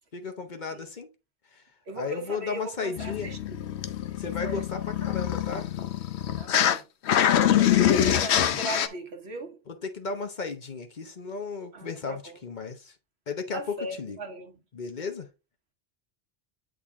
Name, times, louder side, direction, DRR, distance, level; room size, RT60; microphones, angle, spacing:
voice 1, 0.1-1.1 1.9-3.3 4.2-5.9 7.5-8.0 9.7-12.9 13.3-13.6 14.0-14.2 14.7-15.3, left 4 dB, 50° left, 1.0 m, -35 dB
voice 2, 1.9-3.6 4.4-4.7 6.4-6.9 7.2-7.7 8.0-9.6 11.7-12.4 13.5-14.6, right 1 dB, 80° right, 1.5 m, -38 dB
sound 1, 3.0-6.8 7.1-8.9, left 10 dB, 90° left, 0.9 m, -24 dB
8.6 x 3.7 x 3.6 m
omnidirectional pair, 1.1 m